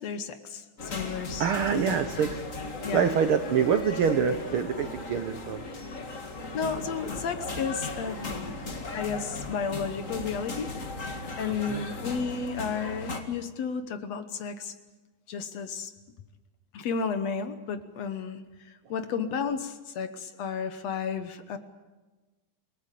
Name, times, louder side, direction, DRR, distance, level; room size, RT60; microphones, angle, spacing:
voice 1, 0.0-1.9 2.8-3.1 6.5-8.6 8.9-10.7 11.1-14.7 15.3-15.9 16.7-21.6, left 6 dB, 60° left, 10 dB, 2.0 m, -33 dB
sound 1, 0.8-13.2, left 3 dB, 30° left, 1.8 m, -37 dB
voice 2, 1.4-2.4 2.9-5.6 11.7-11.8, right 7 dB, 75° right, 9 dB, 1.2 m, -25 dB
28.5 x 18.5 x 8.4 m, 1.2 s
omnidirectional pair, 3.8 m